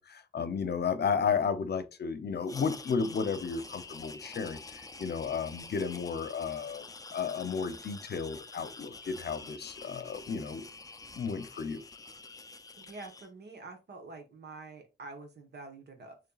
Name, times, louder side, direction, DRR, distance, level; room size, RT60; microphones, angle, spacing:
voice 1, 0.0-10.7 11.2-11.8, left 6 dB, 65° left, 0.7 m, -33 dB
sound 1, 2.5-13.3, left 3 dB, 20° left, 0.4 m, -47 dB
voice 2, 12.8-16.2, right 3 dB, 70° right, 1.3 m, -47 dB
6.9 x 3.2 x 2.4 m
wide cardioid pair, 140°, 18 cm